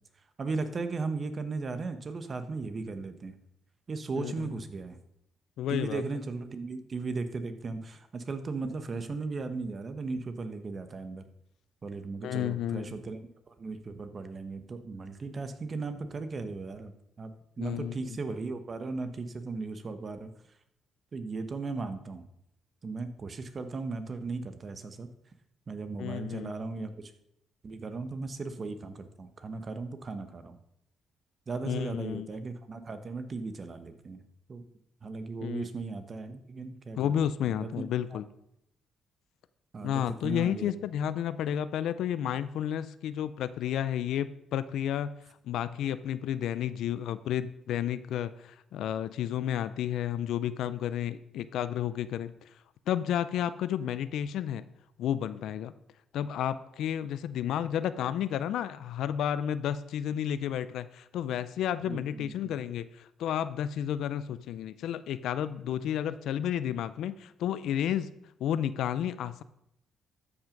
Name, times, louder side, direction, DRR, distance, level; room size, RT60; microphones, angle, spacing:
voice 1, 0.4-3.4 3.9-5.0 5.7-11.2 11.8-20.3 21.1-22.3 22.8-25.1 25.7-27.1 27.6-30.6 31.5-34.2 34.5-34.6 35.0-37.8 38.1-38.2 39.7-40.7 61.8-62.5, right 3 dB, 40° right, 9 dB, 1.1 m, -37 dB
voice 2, 4.1-4.6 5.6-6.0 12.2-13.0 17.6-18.0 26.0-26.5 31.6-32.3 35.4-35.7 37.0-38.2 39.8-45.1 45.4-52.3 52.9-54.6 55.0-55.7 56.1-68.1 68.4-69.4, left 10 dB, 80° left, 14 dB, 0.5 m, -31 dB
13.0 x 6.1 x 5.2 m, 0.79 s
cardioid pair, 90°, 0 cm